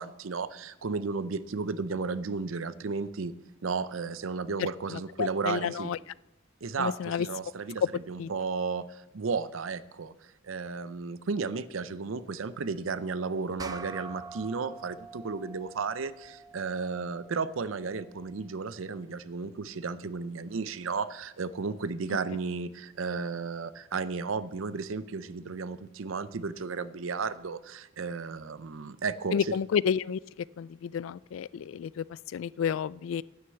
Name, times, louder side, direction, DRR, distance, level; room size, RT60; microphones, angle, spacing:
voice 1, 0.0-3.3 3.6-5.9 6.6-29.6, right 4 dB, 70° right, 15 dB, 0.6 m, -34 dB
voice 2, 4.9-6.0 6.8-7.3 8.2-8.3 29.3-30.2 30.6-33.2, left 7 dB, 70° left, 21 dB, 0.3 m, -31 dB
sound 1, 13.6-18.4, right 4 dB, 20° right, 0.5 m, -46 dB
9.6 x 9.6 x 7.0 m, 0.95 s
head